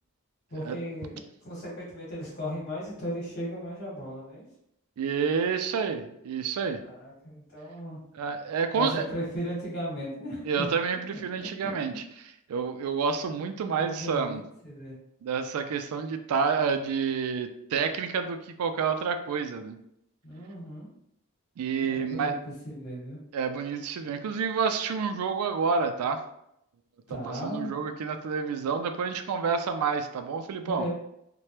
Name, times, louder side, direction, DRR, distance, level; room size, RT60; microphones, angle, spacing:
voice 1, 0.5-4.5 6.8-8.0 8.7-10.7 11.1-11.7 13.6-14.9 20.2-20.9 21.8-23.2 27.1-27.7 30.6-30.9, equal, 45° left, -5 dB, 1.3 m, -36 dB
voice 2, 5.0-6.8 8.1-9.1 10.5-12.0 12.5-14.4 15.2-19.8 21.6-22.3 23.3-26.2 27.1-30.8, right 5 dB, 80° right, 8 dB, 0.3 m, -29 dB
3.2 x 2.2 x 2.8 m, 0.77 s
head